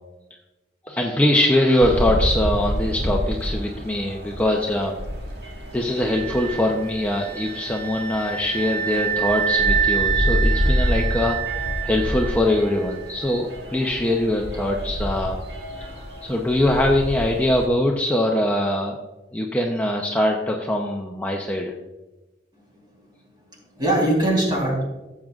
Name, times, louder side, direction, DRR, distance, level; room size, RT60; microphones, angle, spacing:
voice 1, 0.8-5.0 5.7-11.5 11.8-15.4 16.2-19.0 19.3-21.7, left 1 dB, 10° left, -1 dB, 0.7 m, -22 dB
sound 1, 1.8-17.7, equal, 65° right, 1.7 m, -28 dB
sound 2, 6.0-12.8, right 7 dB, 85° right, 2.7 m, -27 dB
voice 2, 22.5-24.8, right 1 dB, 25° right, -2 dB, 3.5 m, -24 dB
15.5 x 7.4 x 2.4 m, 1.1 s
head